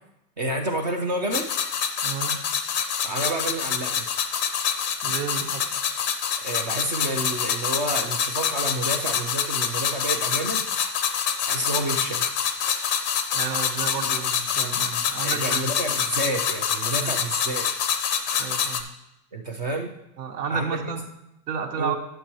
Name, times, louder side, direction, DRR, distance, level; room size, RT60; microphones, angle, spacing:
voice 1, 0.4-1.5 3.0-4.1 6.4-10.6 11.5-12.2 15.2-17.7 19.3-19.9 20.5-20.8 21.8-21.9, right 1 dB, 30° right, 2 dB, 0.3 m, -29 dB
sound 1, 1.3-18.8, left 7 dB, 30° left, 0.4 m, -26 dB
voice 2, 2.0-2.4 5.0-5.6 13.3-15.7 17.0-17.1 18.3-18.9 20.2-21.0 21.5-22.0, right 6 dB, 80° right, 5 dB, 1.4 m, -31 dB
9.9 x 6.8 x 2.9 m, 0.87 s
supercardioid pair, 155°, 48 cm